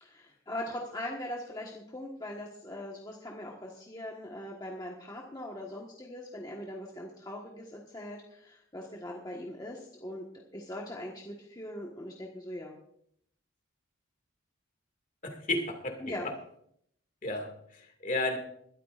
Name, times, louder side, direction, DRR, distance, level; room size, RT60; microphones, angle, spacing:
voice 1, 0.0-10.2 10.5-12.7 16.0-16.3, left 1 dB, 20° left, -2 dB, 1.4 m, -41 dB
voice 2, 15.2-16.0 17.2-18.4, left 2 dB, 40° left, 4 dB, 2.1 m, -33 dB
20.5 x 13.5 x 2.5 m, 0.69 s
head